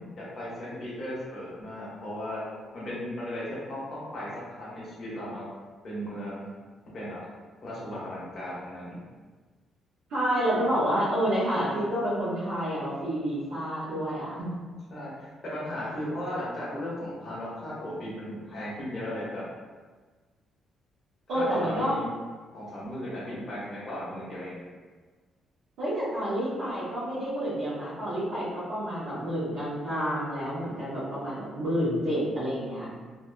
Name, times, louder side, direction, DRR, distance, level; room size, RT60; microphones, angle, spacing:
voice 1, 0.4-2.4 2.7-5.5 5.8-6.5 6.9-7.2 7.6-9.0 10.5-10.7 14.9-19.4 21.3-22.1 22.5-24.6, left 1 dB, 45° left, -8 dB, 1.0 m, -36 dB
voice 2, 10.1-14.3 21.3-21.9 25.8-32.9, equal, 85° right, -13 dB, 0.9 m, -29 dB
2.7 x 2.5 x 2.2 m, 1.4 s
cardioid pair, 90°, 0 cm